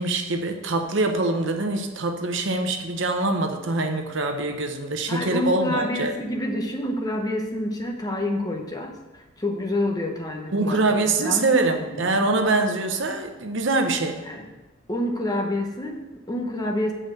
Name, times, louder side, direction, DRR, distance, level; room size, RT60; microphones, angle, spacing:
voice 1, 0.0-6.1 10.5-14.2, right 2 dB, 60° right, 5 dB, 0.9 m, -24 dB
voice 2, 5.1-8.9 9.4-12.3 14.3-14.5 14.9-16.9, left 1 dB, 20° left, 2 dB, 0.9 m, -28 dB
6.4 x 5.0 x 6.5 m, 1.1 s
head